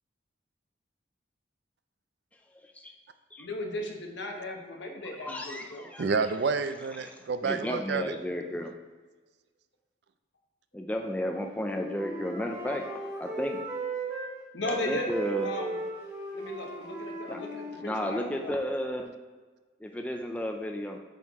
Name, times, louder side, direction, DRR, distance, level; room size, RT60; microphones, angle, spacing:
voice 1, 2.5-2.9 3.3-3.5 5.2-6.2 6.9-7.1 7.4-8.7 10.7-12.9 13.2-13.6 14.7-15.5 17.3-17.4 17.8-19.1 19.8-21.0, equal, 5° left, 3 dB, 0.4 m, -33 dB
voice 2, 3.4-5.9 14.5-15.8 16.3-18.6, left 1 dB, 65° left, 2 dB, 1.0 m, -36 dB
voice 3, 6.0-8.1, right 4 dB, 60° right, 11 dB, 0.4 m, -29 dB
Wind instrument woodwind instrument, 11.2-14.3 14.6-18.4, right 2 dB, 15° right, 1.9 m, -37 dB
8.1 x 4.5 x 3.5 m, 1.3 s
head